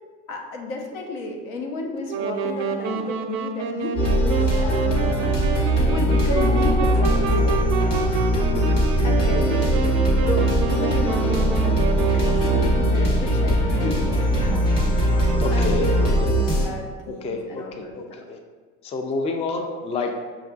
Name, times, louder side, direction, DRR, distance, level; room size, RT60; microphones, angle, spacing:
voice 1, 0.3-5.3 5.8-7.6 9.0-9.8 10.2-14.7 14.9-15.2 15.5-18.2, left 2 dB, 80° left, 1 dB, 0.8 m, -32 dB
sound 1, 2.0-3.1 4.1-5.5 5.8-6.7 7.0-7.5, left 1 dB, 40° left, 1.1 m, -40 dB
Wind instrument woodwind instrument, 2.1-13.0, right 4 dB, 85° right, 0.4 m, -28 dB
sound 2, 4.0-16.7, right 1 dB, 55° left, 1.3 m, -20 dB
voice 2, 8.5-8.9 15.3-16.3 17.2-17.6 17.9-18.0 18.3-18.4 18.8-20.1, left 3 dB, 20° left, 3 dB, 0.3 m, -28 dB
6.0 x 2.4 x 2.3 m, 1.5 s
supercardioid pair, 105°, 30 cm